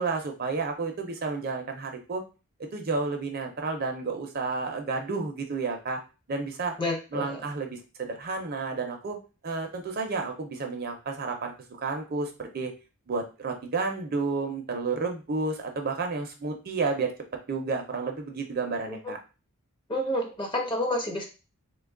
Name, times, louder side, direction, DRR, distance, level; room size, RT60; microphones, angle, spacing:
voice 1, 0.0-2.2 2.7-6.0 6.3-6.7 7.1-9.2 9.4-11.5 11.8-12.7 13.1-17.1 17.5-19.2, right 4 dB, 45° right, 4 dB, 0.5 m, -31 dB
voice 2, 6.8-7.4 18.9-19.0 19.9-21.3, left 1 dB, 20° left, 2 dB, 0.7 m, -29 dB
3.0 x 2.2 x 3.7 m, 0.31 s
head